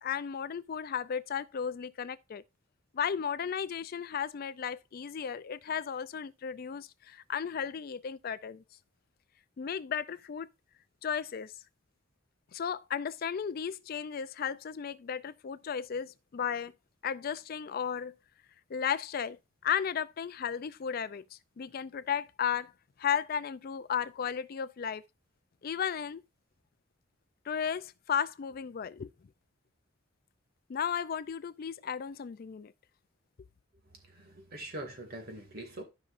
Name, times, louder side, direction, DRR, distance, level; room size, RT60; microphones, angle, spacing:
voice 1, 0.0-2.4 2.9-8.6 9.6-10.5 11.0-11.5 12.5-16.7 17.0-18.1 18.7-22.7 23.0-25.0 25.6-26.2 27.5-29.1 30.7-32.7, left 7 dB, 45° left, 0.4 m, -34 dB
voice 2, 34.0-35.8, right 1 dB, 50° right, 2.1 m, -43 dB
13.0 x 5.3 x 2.5 m
head